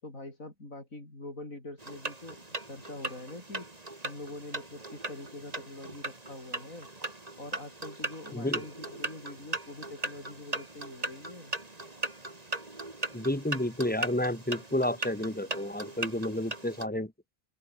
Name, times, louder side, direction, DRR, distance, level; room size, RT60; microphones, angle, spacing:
voice 1, 0.0-2.4 2.7-3.7 4.0-6.9 7.4-11.6, left 2 dB, 85° left, 7.1 m, -44 dB
sound 1, 1.8-16.9, right 2 dB, 30° right, 2.7 m, -39 dB
voice 2, 8.3-8.6 13.1-17.1, left 1 dB, 5° left, 2.6 m, -31 dB
open air
omnidirectional pair, 1.4 m